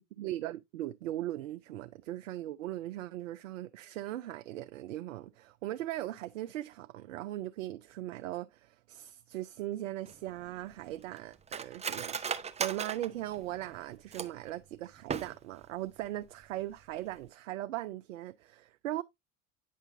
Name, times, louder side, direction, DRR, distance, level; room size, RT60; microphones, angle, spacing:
voice 1, 0.2-19.0, right 14 dB, 75° right, 0.5 m, -39 dB
Cutlery silverware, 10.0-14.5 15.0-15.7 16.0-16.1 16.4-16.8 17.1-17.3, right 6 dB, 15° right, 0.6 m, -38 dB
9.2 x 5.6 x 2.6 m
figure-of-eight pair, 70°, 39 cm